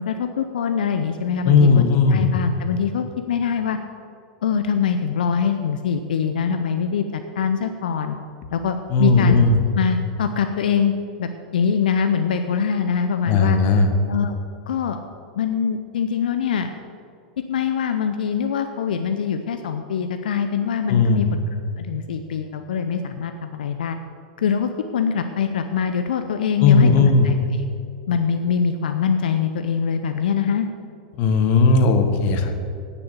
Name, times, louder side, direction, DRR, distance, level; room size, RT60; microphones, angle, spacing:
voice 1, 0.0-3.8 4.4-8.2 8.5-9.4 9.7-10.9 11.2-13.6 14.1-14.3 14.7-15.0 15.4-16.7 17.4-21.4 21.8-24.0 24.4-27.3 28.1-30.7, left 7 dB, 85° left, 7 dB, 0.6 m, -23 dB
voice 2, 1.4-2.3 8.9-9.6 13.3-13.9 20.9-21.3 26.6-27.3 31.2-32.7, left 4 dB, 50° left, 7 dB, 1.3 m, -16 dB
9.5 x 6.9 x 7.1 m, 2.5 s
hypercardioid pair, 120°, 5 cm